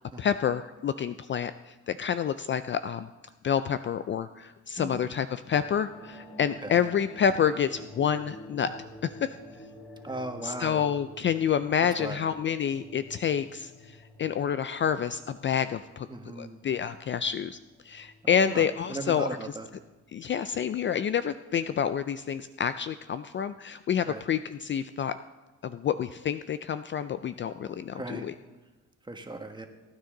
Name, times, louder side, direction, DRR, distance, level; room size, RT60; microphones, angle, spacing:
voice 1, 0.2-3.1 3.4-8.7 9.0-9.3 10.4-16.1 16.4-17.6 17.8-19.3 20.1-25.2 25.6-28.3, left 8 dB, 40° left, 12 dB, 0.4 m, -28 dB
sound 1, 5.3-20.2, left 1 dB, 15° left, 4.1 m, -50 dB
voice 2, 10.0-10.8 12.0-12.2 16.1-16.6 18.2-19.7 24.1-24.2 27.9-28.3 29.0-29.7, right 2 dB, 15° right, 5 dB, 1.6 m, -37 dB
20.5 x 9.6 x 3.9 m, 1.2 s
cardioid pair, 90°, 30 cm